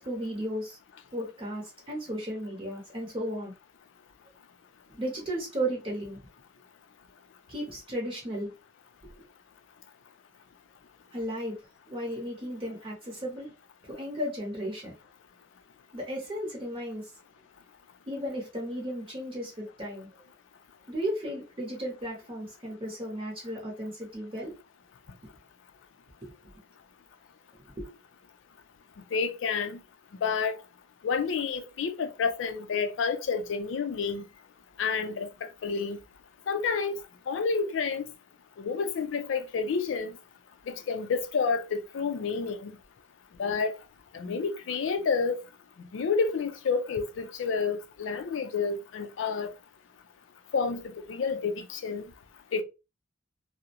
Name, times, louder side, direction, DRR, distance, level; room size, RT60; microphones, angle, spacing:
voice 1, 0.0-0.8 1.1-3.5 4.9-6.2 7.5-8.5 9.0-9.1 11.1-11.6 11.9-13.5 13.9-14.9 15.9-17.1 18.1-20.2 20.9-24.5 26.2-26.3 27.5-27.9, equal, 30° right, 0.7 m, -35 dB
voice 2, 29.1-29.8 30.2-30.5 31.0-34.2 34.8-36.0 36.5-37.0 37.3-38.0 38.6-40.1 40.7-42.8 43.4-43.7 44.1-45.4 45.9-49.5 50.5-52.0 52.5-52.6, left 5 dB, 75° left, 0.4 m, -29 dB
2.4 x 2.0 x 2.7 m
head